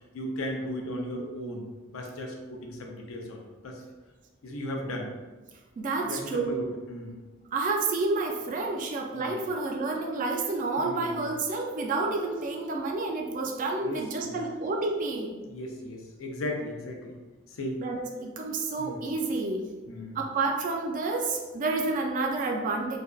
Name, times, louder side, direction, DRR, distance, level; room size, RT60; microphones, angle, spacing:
voice 1, 0.1-3.8 4.4-5.1 6.0-7.2 9.1-9.3 10.8-11.3 13.8-14.4 15.4-17.1 17.5-17.8 18.8-19.0 19.9-20.2, left 1 dB, 85° left, 1 dB, 0.4 m, -36 dB
voice 2, 5.8-6.6 7.5-15.3 17.8-19.6 20.1-23.0, right 3 dB, 40° right, 2 dB, 0.3 m, -29 dB
2.6 x 2.1 x 2.2 m, 1.2 s
head